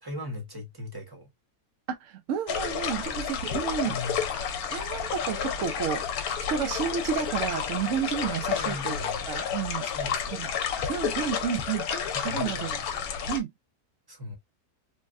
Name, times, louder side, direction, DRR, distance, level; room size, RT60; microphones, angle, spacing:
voice 1, 0.0-1.3 3.8-4.3 8.5-9.3 9.8-10.6 12.1-12.9 14.1-14.4, left 2 dB, 20° right, 0.8 m, -39 dB
voice 2, 2.0-4.0 4.7-6.0 6.5-9.0 9.3-9.9 10.3-10.5 10.9-11.9 12.2-12.8 13.3-13.5, right 8 dB, 65° right, 0.8 m, -31 dB
sound 1, 2.5-13.4, left 7 dB, 70° left, 1.0 m, -31 dB
3.3 x 2.2 x 2.4 m
omnidirectional pair, 1.6 m